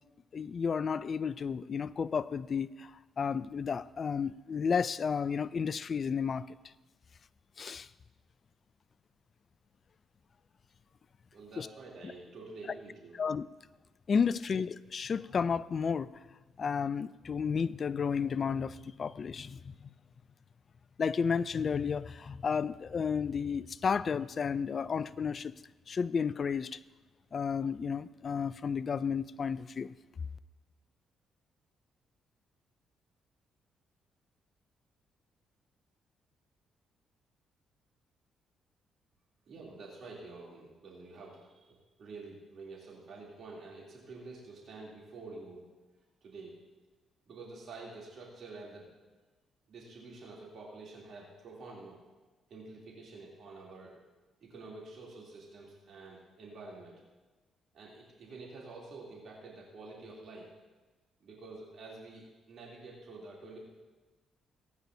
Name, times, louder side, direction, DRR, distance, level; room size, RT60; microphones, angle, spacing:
voice 1, 0.3-2.9 3.2-6.5 7.6-7.9 11.6-11.7 13.1-13.5 14.1-16.1 16.6-19.9 21.0-25.6 25.9-26.8 27.3-29.9, left 6 dB, 45° left, 0.3 m, -32 dB
voice 2, 11.3-13.2 39.5-45.6 46.2-46.5 47.2-48.9 49.7-52.0 52.5-53.9 54.4-57.0 57.7-60.5 61.2-63.6, right 3 dB, 60° right, 3.0 m, -48 dB
19.0 x 9.5 x 2.7 m
cardioid pair, 90°, 0 cm